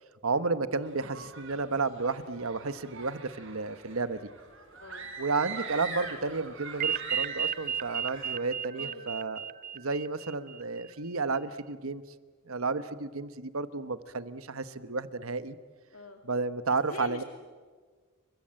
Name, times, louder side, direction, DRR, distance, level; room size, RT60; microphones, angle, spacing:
voice 1, 0.2-4.2 5.2-9.4 9.7-12.0 12.5-15.6 16.2-17.2, right 4 dB, 85° right, 12 dB, 1.2 m, -32 dB
sound 1, 0.8-8.4, right 4 dB, 65° right, 4.2 m, -43 dB
voice 2, 4.7-5.1 8.7-9.1 15.9-16.2 16.7-17.2, left 2 dB, 85° left, 4 dB, 2.6 m, -45 dB
sound 2, 6.8-10.9, right 8 dB, 40° right, 0.7 m, -34 dB
29.5 x 23.5 x 7.8 m, 1.5 s
head